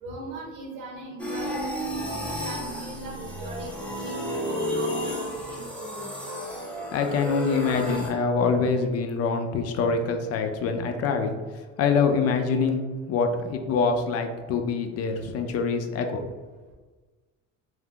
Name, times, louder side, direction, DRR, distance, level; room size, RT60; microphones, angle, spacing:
voice 1, 0.0-6.1, right 1 dB, 90° right, -1 dB, 1.0 m, -40 dB
sound 1, 1.2-8.1, equal, 5° left, 0.7 m, -32 dB
voice 2, 6.9-11.4 11.8-12.8 13.1-16.2, left 5 dB, 50° left, 5 dB, 0.4 m, -25 dB
2.6 x 2.3 x 3.6 m, 1.3 s
cardioid pair, 105°, 31 cm